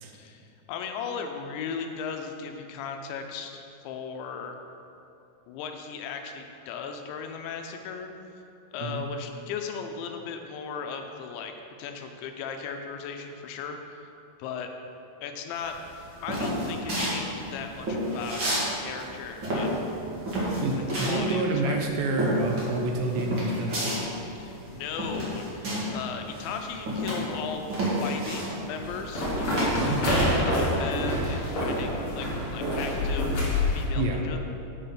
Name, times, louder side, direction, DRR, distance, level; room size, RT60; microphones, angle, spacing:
voice 1, 0.1-4.6 5.5-8.1 8.7-11.5 11.8-14.1 14.4-14.7 15.2-19.7 21.0-21.9 24.4-33.4 33.7-34.4, left 6 dB, 85° left, 5 dB, 2.9 m, -37 dB
sound 1, 15.7-18.7 18.9-26.0 26.3-30.3, equal, 45° right, 1.6 m, -30 dB
voice 2, 20.6-23.8 29.8-30.1 34.0-34.2, right 2 dB, 80° right, 1 dB, 2.9 m, -28 dB
sound 2, 28.8-33.9, left 1 dB, 55° left, 1.6 m, -27 dB
7.5 x 6.9 x 5.8 m, 2.7 s
omnidirectional pair, 5.2 m